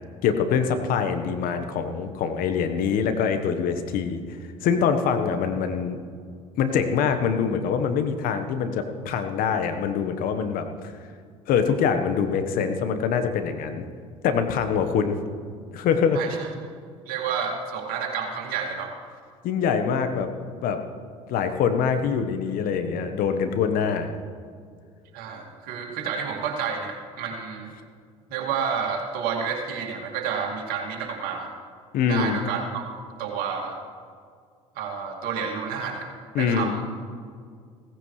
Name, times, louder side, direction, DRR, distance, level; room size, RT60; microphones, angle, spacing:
voice 1, 0.2-4.2 4.6-6.0 6.6-10.6 11.5-13.8 14.2-15.2 15.7-16.2 19.4-20.3 20.6-20.8 21.3-24.1 31.9-32.4 36.3-36.8, left 6 dB, 60° left, 8 dB, 1.2 m, -24 dB
voice 2, 16.1-16.5 17.1-18.9 25.1-27.7 28.3-31.5 32.1-32.8 33.2-33.8 34.8-36.8, right 6 dB, 65° right, 0 dB, 2.4 m, -30 dB
16.5 x 15.5 x 3.3 m, 2.1 s
hypercardioid pair, 65°, 17 cm